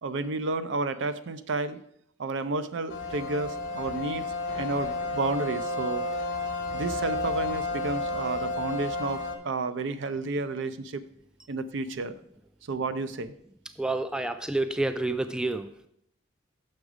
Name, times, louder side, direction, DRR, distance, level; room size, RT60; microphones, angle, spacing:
voice 1, 0.0-1.8 2.2-4.3 4.6-6.1 6.7-11.0 11.5-12.2 12.7-13.3, right 3 dB, 65° right, 12 dB, 0.5 m, -31 dB
sound 1, 2.9-9.4, left 2 dB, 70° left, 1.0 m, -31 dB
voice 2, 13.8-15.9, right 2 dB, 5° right, 9 dB, 0.3 m, -29 dB
6.5 x 6.1 x 4.8 m, 0.72 s
head